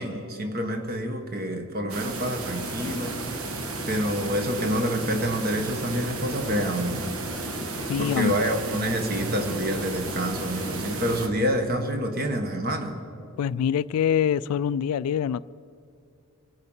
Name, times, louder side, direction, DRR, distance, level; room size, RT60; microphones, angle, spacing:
voice 1, 0.0-3.2 3.8-7.1 8.0-13.0, equal, 40° right, 1.3 m, -27 dB
sound 1, 1.9-11.3, right 2 dB, 75° right, 1.4 m, -33 dB
voice 2, 7.9-8.5 13.4-15.4, left 8 dB, 85° left, 0.3 m, -25 dB
25.0 x 9.6 x 5.6 m
head